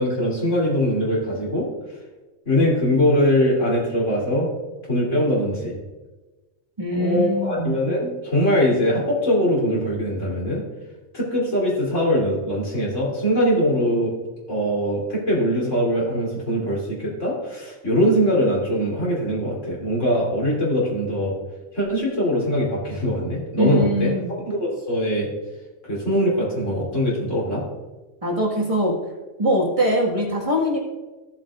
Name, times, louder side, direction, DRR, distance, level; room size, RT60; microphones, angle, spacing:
voice 1, 0.0-1.7 2.5-4.5 4.9-5.8 6.9-10.6 11.1-14.1 14.5-21.4 21.7-24.1 24.5-25.3 25.8-27.6, equal, 75° left, -4 dB, 3.6 m, -22 dB
voice 2, 6.8-7.7 23.6-24.3 28.2-29.0 29.4-30.8, equal, 25° right, -3 dB, 1.8 m, -22 dB
15.5 x 7.5 x 2.5 m, 1.2 s
omnidirectional pair, 1.3 m